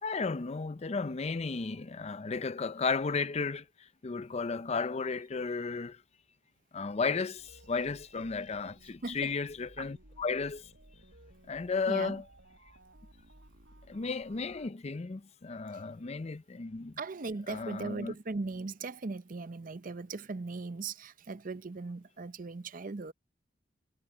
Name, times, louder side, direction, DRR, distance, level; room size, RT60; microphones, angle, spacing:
voice 1, 0.0-3.6 4.0-6.0 6.7-10.7 11.5-12.2 13.9-17.0 17.5-18.1, left 4 dB, 35° left, 0.5 m, -34 dB
sound 1, 7.4-14.7, right 1 dB, 90° right, 6.4 m, -58 dB
voice 2, 9.0-9.4 11.9-12.2 17.0-23.1, right 3 dB, 50° right, 0.6 m, -38 dB
head